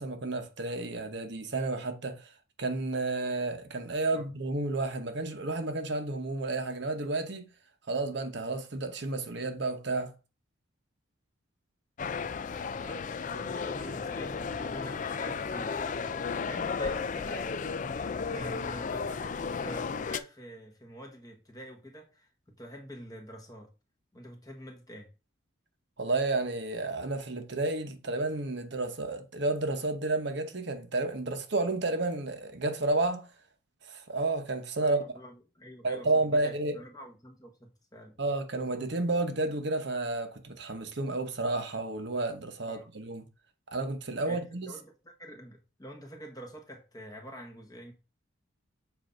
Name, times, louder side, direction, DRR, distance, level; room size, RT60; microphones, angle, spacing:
voice 1, 0.0-7.4 7.9-10.1 18.4-18.5 26.0-33.3 33.8-35.0 35.8-36.7 38.2-43.2 43.7-44.7, right 2 dB, 55° right, 0.9 m, -31 dB
sound 1, 12.0-20.2, left 5 dB, 40° left, 0.3 m, -34 dB
voice 2, 12.8-15.9 16.4-17.5 18.3-22.3 22.6-23.7 24.1-25.1 34.8-38.2 42.7-42.9 44.2-47.9, equal, 20° left, 1.2 m, -46 dB
7.7 x 2.7 x 5.2 m
head